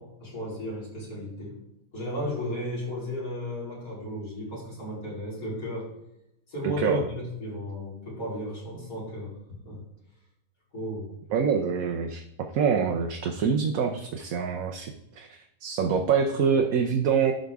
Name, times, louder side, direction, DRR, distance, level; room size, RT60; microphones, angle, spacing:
voice 1, 0.0-1.6 1.9-5.9 6.5-9.4 9.7-9.8 10.7-11.2, left 1 dB, 65° left, -6 dB, 4.3 m, -34 dB
voice 2, 6.6-7.0 11.3-12.2 12.5-17.3, right 6 dB, 70° right, 3 dB, 1.2 m, -25 dB
11.5 x 5.2 x 3.5 m, 0.84 s
omnidirectional pair, 1.6 m